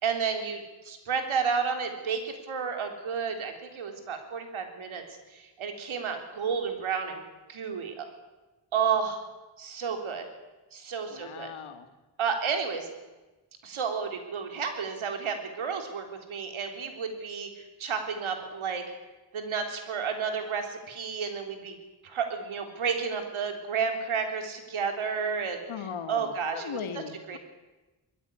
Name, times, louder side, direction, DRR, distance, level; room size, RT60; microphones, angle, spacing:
voice 1, 0.0-5.0 5.3-7.2 7.5-8.1 8.7-9.2 9.6-10.3 10.7-11.5 12.2-12.9 13.6-18.8 19.3-21.8 22.0-25.6 26.1-26.8 27.3-27.4, right 6 dB, 85° right, 5 dB, 3.7 m, -31 dB
voice 2, 11.1-11.9 25.7-27.4, left 7 dB, 85° left, 9 dB, 2.0 m, -38 dB
20.5 x 14.5 x 9.9 m, 1.1 s
cardioid pair, 75°, 47 cm